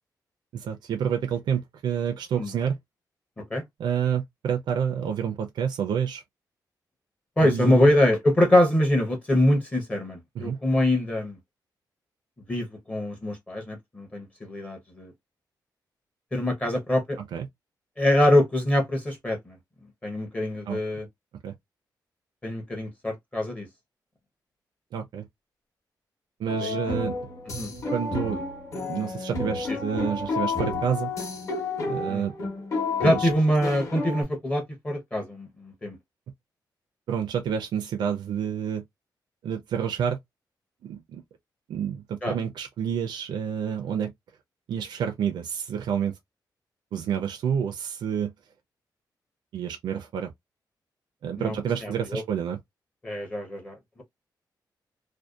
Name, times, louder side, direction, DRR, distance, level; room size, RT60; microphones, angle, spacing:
voice 1, 0.5-2.8 3.8-6.2 7.4-7.9 10.3-10.6 17.3-17.5 20.7-20.8 21.4-21.5 24.9-25.2 26.4-27.1 27.9-28.4 28.9-31.1 31.9-32.3 33.0-33.3 37.1-38.8 39.4-40.2 40.8-41.2 41.7-44.1 44.7-46.2 46.9-48.3 49.5-50.3 51.2-52.6, right 8 dB, 80° right, 0.4 m, -29 dB
voice 2, 7.4-11.4 12.5-15.1 16.3-17.2 18.0-19.6 20.0-21.1 22.4-23.7 26.6-26.8 27.6-27.7 29.7-29.8 32.1-32.3 33.0-36.0 42.2-42.3 51.4-51.6 51.8-52.2 53.0-54.0, left 1 dB, 15° left, 0.6 m, -24 dB
sound 1, 26.5-34.2, left 3 dB, 45° left, 0.9 m, -31 dB
2.6 x 2.1 x 2.3 m
wide cardioid pair, 175°, 8 cm